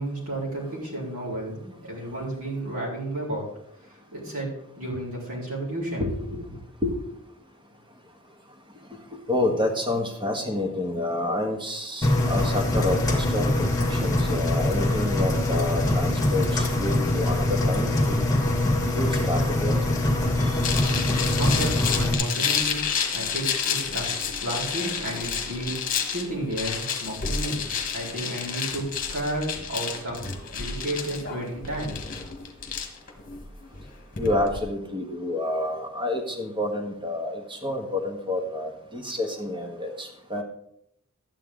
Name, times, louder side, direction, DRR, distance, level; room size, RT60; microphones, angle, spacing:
voice 1, 0.0-3.5 4.1-6.0 21.0-22.8 23.1-24.1 24.4-25.7 26.1-27.6 27.9-30.2 30.5-32.0, right 1 dB, 70° right, -5 dB, 4.3 m, -32 dB
voice 2, 6.0-6.4 6.8-6.9 9.3-13.7 14.0-18.2 18.9-19.7 20.4-20.5 34.2-40.4, left 1 dB, 20° right, 3 dB, 1.5 m, -28 dB
Engine, 12.0-22.1, left 1 dB, 15° left, 1.7 m, -23 dB
sound 1, 20.6-34.6, left 6 dB, 40° left, 1.4 m, -30 dB
12.0 x 9.1 x 3.8 m, 0.73 s
head